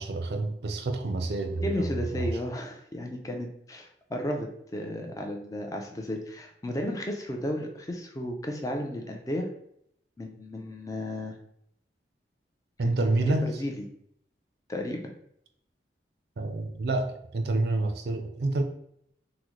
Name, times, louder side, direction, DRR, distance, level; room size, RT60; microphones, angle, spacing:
voice 1, 0.0-1.9 2.1-2.3 12.8-13.6 16.4-18.6, right 2 dB, 60° right, 5 dB, 0.4 m, -28 dB
voice 2, 1.6-9.5 10.2-11.4 12.8-13.1 13.4-13.7 14.7-15.0, left 1 dB, 20° left, 2 dB, 0.4 m, -33 dB
3.7 x 2.1 x 3.0 m, 0.72 s
head